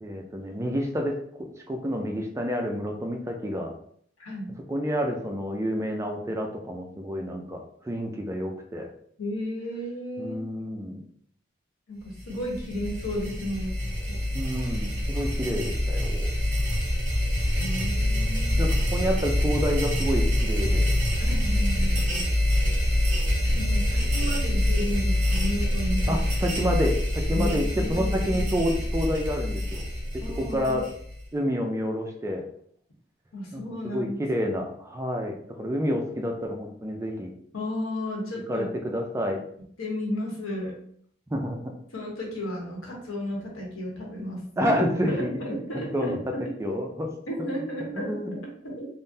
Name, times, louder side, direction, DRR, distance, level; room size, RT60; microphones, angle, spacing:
voice 1, 0.0-1.2 1.7-3.7 4.7-8.9 10.2-11.0 14.3-16.3 18.6-20.9 26.1-29.8 30.4-30.9 31.3-32.4 33.5-37.3 38.5-39.4 41.3-41.7 44.6-45.3 45.9-46.3 46.6-47.1 47.4-47.5 47.9-48.3, equal, 15° right, 2 dB, 0.3 m, -29 dB
voice 2, 4.2-4.5 9.2-10.4 11.9-13.8 14.1-14.2 17.6-18.6 21.2-22.0 23.6-26.2 27.3-28.3 30.2-30.8 33.3-34.3 37.5-38.7 39.8-40.8 41.9-46.8 47.3-48.9, left 1 dB, 80° left, -1 dB, 1.0 m, -33 dB
sound 1, 12.2-31.3, left 1 dB, 40° right, 1.2 m, -25 dB
3.5 x 2.1 x 2.6 m, 0.63 s
head